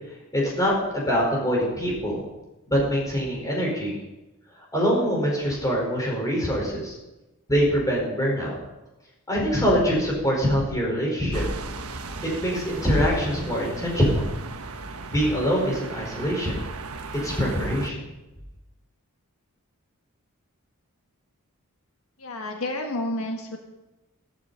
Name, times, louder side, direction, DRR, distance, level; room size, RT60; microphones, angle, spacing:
voice 1, 0.3-2.2 2.7-4.0 4.6-6.9 7.5-8.6 9.3-11.4 12.2-14.3 15.1-16.6 17.2-18.0, equal, 15° left, -3 dB, 5.1 m, -24 dB
sound 1, 11.3-17.9, right 3 dB, 80° right, 1.2 m, -36 dB
voice 2, 22.2-23.6, left 1 dB, 70° left, 3 dB, 1.5 m, -30 dB
15.0 x 14.5 x 4.3 m, 1.0 s
head